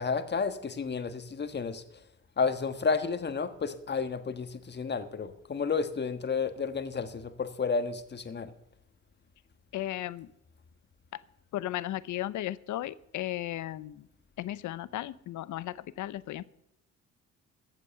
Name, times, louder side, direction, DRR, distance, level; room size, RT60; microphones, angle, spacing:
voice 1, 0.0-1.8 2.4-8.5, left 5 dB, 35° left, 10 dB, 1.4 m, -31 dB
voice 2, 9.7-10.3 11.1-11.2 11.5-14.0 14.4-16.4, left 14 dB, 75° left, 17 dB, 0.7 m, -35 dB
14.5 x 8.3 x 6.5 m, 0.80 s
cardioid pair, 90°, 30 cm